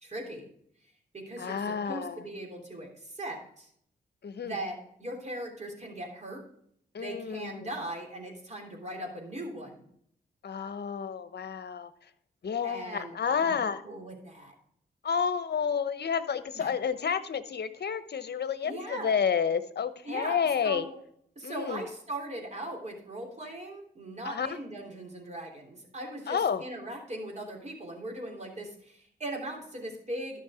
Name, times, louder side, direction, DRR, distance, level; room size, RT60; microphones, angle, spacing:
voice 1, 0.0-0.5 1.1-3.7 4.4-6.4 7.0-9.8 12.6-14.5 16.5-16.7 18.6-19.1 20.1-21.0 21.4-30.4, right 1 dB, 35° right, 2 dB, 3.4 m, -39 dB
voice 2, 1.4-2.2 4.2-4.5 6.9-7.6 10.4-11.9 12.4-13.8 15.0-20.9 21.4-21.8 24.2-24.6 26.3-26.6, left 7 dB, 60° left, 12 dB, 0.9 m, -30 dB
12.0 x 6.2 x 5.0 m, 0.68 s
cardioid pair, 60°, 19 cm